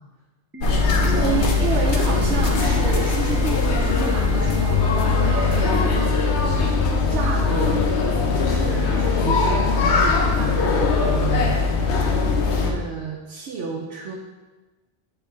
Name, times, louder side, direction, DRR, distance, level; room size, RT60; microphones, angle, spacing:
Organ, 0.5-6.5, right 8 dB, 20° right, 0.3 m, -39 dB
sound 1, 0.6-12.7, left 4 dB, 80° left, 1.0 m, -20 dB
voice 1, 1.0-6.7 7.1-7.8 8.4-11.6 12.4-14.1, right 5 dB, 90° right, -2 dB, 1.0 m, -30 dB
8.0 x 3.5 x 3.6 m, 1.2 s
omnidirectional pair, 1.1 m